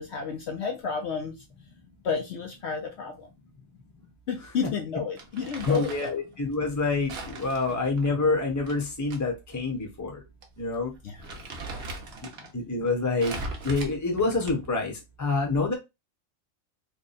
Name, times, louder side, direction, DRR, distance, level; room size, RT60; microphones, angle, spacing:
voice 1, 0.0-1.3 2.0-3.3 4.3-6.1 7.7-7.8 11.0-11.2 11.7-11.9, left 6 dB, 65° left, 0.8 m, -31 dB
Crumpling crinkling, 5.2-6.2 7.1-9.2 9.5-9.6 10.4-10.6 10.9-12.5 13.2-14.8, right 2 dB, 55° right, 1.0 m, -39 dB
voice 2, 5.6-10.2 10.6-10.9 12.5-13.3 13.6-14.9 15.2-15.7, left 3 dB, 15° left, 0.8 m, -27 dB
3.4 x 2.3 x 4.0 m
omnidirectional pair, 1.4 m